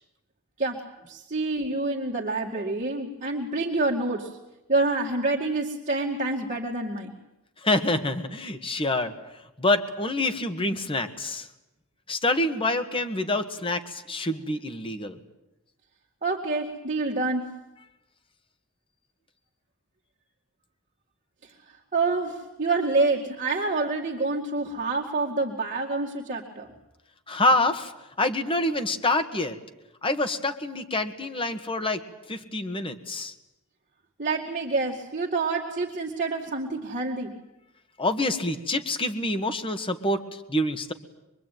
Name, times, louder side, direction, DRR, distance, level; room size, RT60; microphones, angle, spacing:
voice 1, 0.6-4.3 4.7-7.1 16.2-17.5 21.9-26.7 34.2-37.3, right 3 dB, 35° right, -2 dB, 2.3 m, -27 dB
voice 2, 7.6-9.1 9.6-11.5 12.1-15.2 27.3-27.9 28.2-29.6 30.0-32.0 32.3-33.3 38.0-40.9, left 2 dB, 25° left, 8 dB, 1.7 m, -26 dB
24.5 x 23.0 x 9.3 m, 0.95 s
head